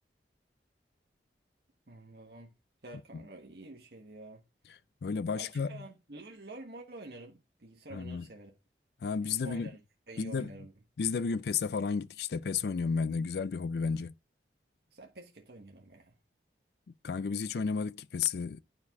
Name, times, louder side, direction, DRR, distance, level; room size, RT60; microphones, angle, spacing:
voice 1, 1.9-2.5 2.8-4.4 5.3-8.5 9.4-9.8 10.1-10.7 14.9-16.2, right 2 dB, 65° right, 1.2 m, -48 dB
voice 2, 5.0-5.8 7.9-8.2 9.0-9.7 10.2-10.5 11.0-14.1 17.0-18.6, left 5 dB, 65° left, 0.4 m, -32 dB
9.8 x 4.4 x 4.7 m
head